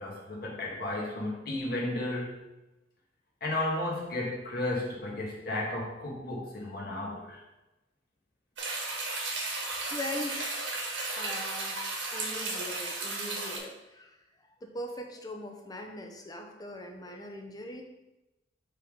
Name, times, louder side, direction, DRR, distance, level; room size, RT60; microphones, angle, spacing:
voice 1, 0.0-2.4 3.4-7.4, left 1 dB, 55° left, -3 dB, 1.6 m, -33 dB
sound 1, 8.6-13.6, right 3 dB, 70° right, 1.6 m, -34 dB
voice 2, 9.8-11.8 12.1-17.8, left 1 dB, 20° left, 3 dB, 0.7 m, -41 dB
5.4 x 3.8 x 5.1 m, 0.99 s
head